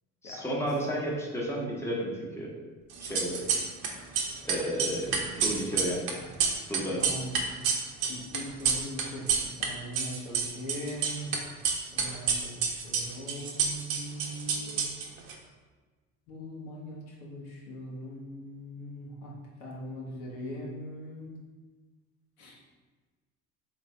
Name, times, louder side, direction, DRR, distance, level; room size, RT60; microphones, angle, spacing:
voice 1, 0.2-2.5 3.0-3.4 4.4-6.0 6.7-7.1, equal, 5° left, -4 dB, 1.1 m, -32 dB
sound 1, 2.9-3.9 4.1-9.7 9.9-11.4 11.6-15.3, right 6 dB, 60° right, 0.8 m, -28 dB
voice 2, 7.0-7.3 8.1-9.3 9.6-11.3 11.9-14.7 16.3-19.3 19.6-21.3 22.4-22.5, equal, 80° left, -3 dB, 1.0 m, -40 dB
3.8 x 3.2 x 3.3 m, 1.3 s
hypercardioid pair, 60°, 42 cm